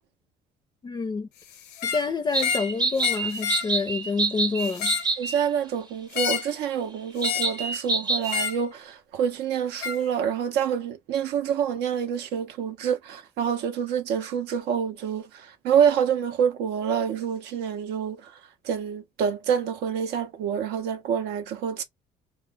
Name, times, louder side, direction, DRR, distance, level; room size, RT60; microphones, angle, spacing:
voice 1, 0.8-1.3 1.8-5.0, left 4 dB, 25° left, 0.4 m, -28 dB
sound 1, 1.7-2.1 2.4-2.7 3.0-3.7 4.6-5.1 6.1-6.5 7.2-7.6 8.3-8.6 9.8-10.0, left 8 dB, 80° left, 0.5 m, -29 dB
sound 2, 2.3-5.5 7.2-8.5, right 3 dB, 25° right, 0.6 m, -27 dB
voice 2, 5.2-18.3 18.6-21.8, right 8 dB, 85° right, 0.5 m, -27 dB
2.0 x 2.0 x 3.2 m
cardioid pair, 110°, 17 cm